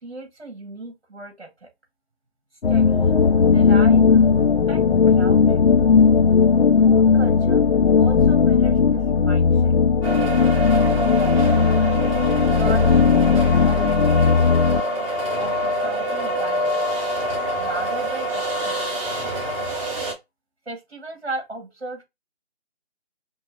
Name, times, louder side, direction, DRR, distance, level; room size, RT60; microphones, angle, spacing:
voice 1, 0.0-1.7 2.7-3.2 3.5-4.3 4.7-5.6 6.8-7.6 8.0-9.7 10.8-12.1 12.5-13.3 13.6-14.6 15.4-16.8 17.6-18.8 20.7-22.0, right 2 dB, 65° right, 2.4 m, -36 dB
sound 1, 2.6-14.8, left 5 dB, 65° left, 0.5 m, -17 dB
sound 2, 10.0-20.1, right 1 dB, 30° right, 1.5 m, -25 dB
5.2 x 2.3 x 3.1 m
figure-of-eight pair, 160°, 33 cm